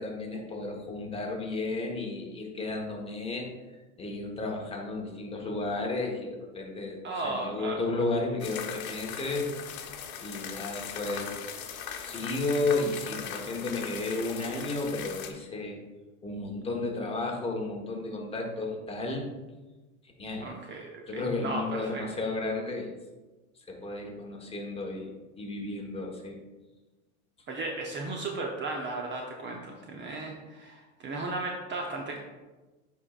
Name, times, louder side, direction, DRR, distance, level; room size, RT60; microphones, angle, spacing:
voice 1, 0.0-9.5 10.2-11.4 12.0-15.8 16.2-19.3 20.0-20.5 21.1-22.9 23.6-26.4, left 2 dB, 15° left, 0 dB, 1.2 m, -33 dB
voice 2, 7.0-7.8 20.4-22.0 27.5-32.2, right 2 dB, 25° right, 1 dB, 0.7 m, -35 dB
sound 1, 8.4-15.3, left 8 dB, 80° left, 0.9 m, -39 dB
9.6 x 4.5 x 2.4 m, 1.2 s
hypercardioid pair, 110°, 42 cm